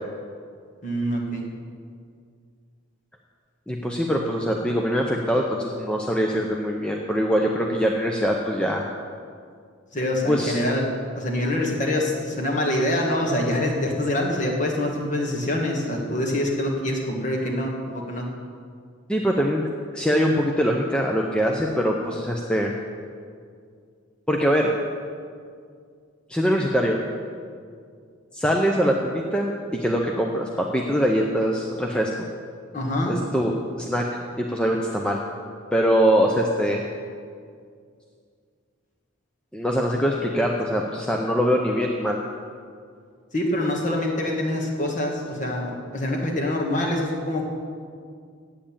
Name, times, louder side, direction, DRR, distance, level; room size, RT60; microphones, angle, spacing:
voice 1, 0.8-1.5 9.9-10.8 11.1-18.3 32.7-33.1 43.3-47.5, left 1 dB, 35° left, 0 dB, 1.5 m, -25 dB
voice 2, 3.7-8.8 10.3-10.6 19.1-19.7 19.9-22.7 24.3-24.7 26.3-27.0 28.3-32.3 33.1-34.0 34.4-35.2 35.7-36.8 39.5-42.2, equal, 5° left, 0 dB, 0.6 m, -23 dB
8.5 x 7.8 x 8.7 m, 2.2 s
head